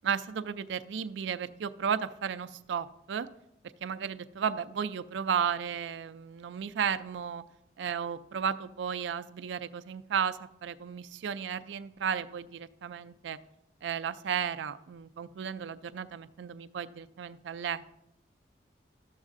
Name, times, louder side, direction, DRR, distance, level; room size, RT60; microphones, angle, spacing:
voice 1, 0.0-3.3 3.8-7.4 7.8-13.4 13.8-18.0, right 7 dB, 80° right, 13 dB, 0.4 m, -34 dB
12.5 x 7.2 x 2.5 m, 0.82 s
head